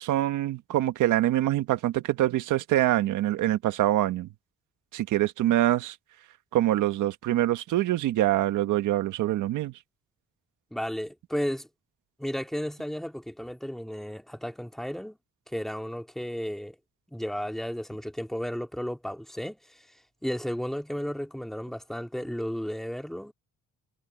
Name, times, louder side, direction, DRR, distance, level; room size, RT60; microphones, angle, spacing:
voice 1, 0.0-4.3 4.9-5.9 6.5-9.7, right 14 dB, 85° right, 1.5 m, -25 dB
voice 2, 10.7-11.7 12.2-15.2 15.5-16.8 17.1-19.9 20.2-23.3, equal, ahead, 2.2 m, -33 dB
cardioid pair, 90°, 30 cm